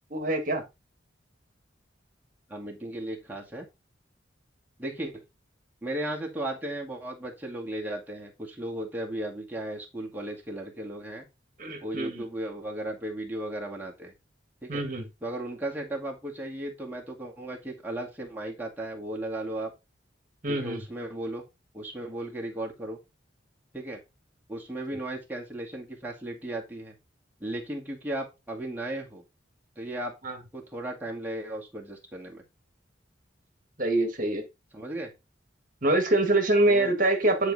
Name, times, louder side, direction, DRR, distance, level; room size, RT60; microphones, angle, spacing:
voice 1, 0.1-0.6 11.6-12.2 14.7-15.0 20.4-20.8 30.2-30.4 33.8-34.4 35.8-37.5, right 2 dB, 45° right, 1.7 m, -25 dB
voice 2, 2.5-3.7 4.8-5.2 5.8-11.2 11.8-14.1 14.6-14.8 15.2-19.7 20.5-21.4 21.7-23.0 23.7-24.0 24.5-27.0 27.4-29.2 29.8-30.2 30.5-32.4 34.7-35.1 36.6-37.0, right 1 dB, 10° right, 2.1 m, -35 dB
10.0 x 4.9 x 4.1 m
head